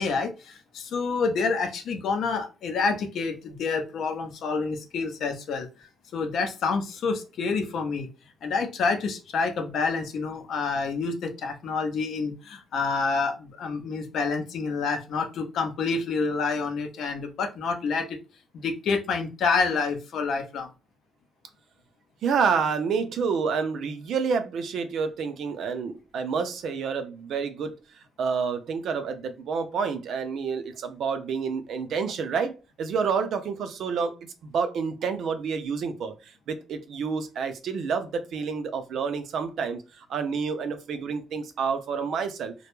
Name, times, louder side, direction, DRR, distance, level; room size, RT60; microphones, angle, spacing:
voice 1, 0.0-8.1 8.4-18.2 18.5-20.7, left 4 dB, 60° left, 0.5 m, -28 dB
voice 2, 22.2-42.5, right 5 dB, 60° right, 0.4 m, -29 dB
2.2 x 2.0 x 2.9 m
cardioid pair, 160°, 0 cm